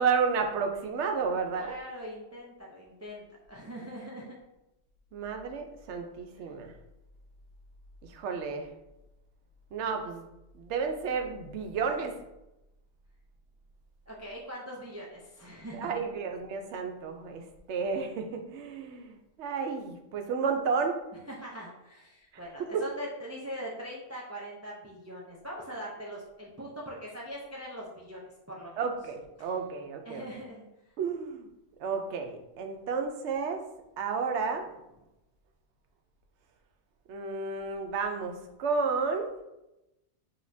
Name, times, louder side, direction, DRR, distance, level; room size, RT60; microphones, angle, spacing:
voice 1, 0.0-1.8 5.1-6.7 8.1-8.7 9.7-10.2 10.5-12.2 15.7-17.4 17.7-21.0 22.7-22.8 28.8-30.3 31.0-31.5 31.8-33.6 34.0-34.6 37.1-39.3, right 5 dB, 80° right, 5 dB, 0.9 m, -31 dB
voice 2, 1.5-4.4 14.1-16.0 21.3-28.2 28.5-28.8 29.4-29.5 30.0-30.7, equal, 25° right, -3 dB, 0.3 m, -42 dB
5.1 x 2.8 x 2.6 m, 0.94 s
omnidirectional pair, 1.2 m